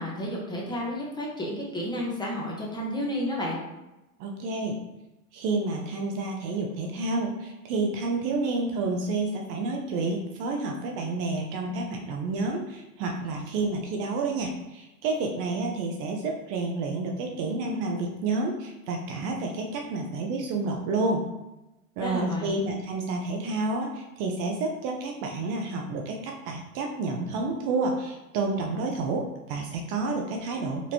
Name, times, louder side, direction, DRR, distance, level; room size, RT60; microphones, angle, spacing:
voice 1, 0.0-3.6 22.0-22.6, left 1 dB, 10° left, -3 dB, 1.0 m, -31 dB
voice 2, 4.2-4.8 5.3-21.2 22.0-30.9, right 3 dB, 50° right, 1 dB, 0.7 m, -29 dB
4.2 x 3.0 x 2.9 m, 0.98 s
hypercardioid pair, 105°, 43 cm